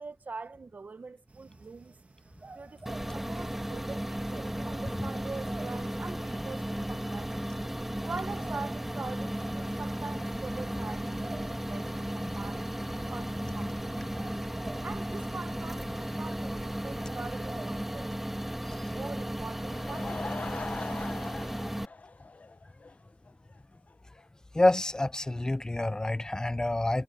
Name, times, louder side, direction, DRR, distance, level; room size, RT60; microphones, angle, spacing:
voice 1, 0.0-1.9 2.5-7.5 8.0-14.2 14.8-18.1 18.9-21.1, right 4 dB, 70° right, 1.0 m, -43 dB
sound 1, 1.3-17.9, right 3 dB, 55° right, 1.8 m, -51 dB
sound 2, 2.9-21.9, right 1 dB, 10° right, 1.9 m, -35 dB
Laughter / Crowd, 19.5-22.9 23.3-23.4 23.9-24.0 24.2-24.3, left 3 dB, 60° left, 0.8 m, -41 dB
voice 2, 24.5-27.0, left 2 dB, 25° left, 0.4 m, -27 dB
wide cardioid pair, 65°, 3 cm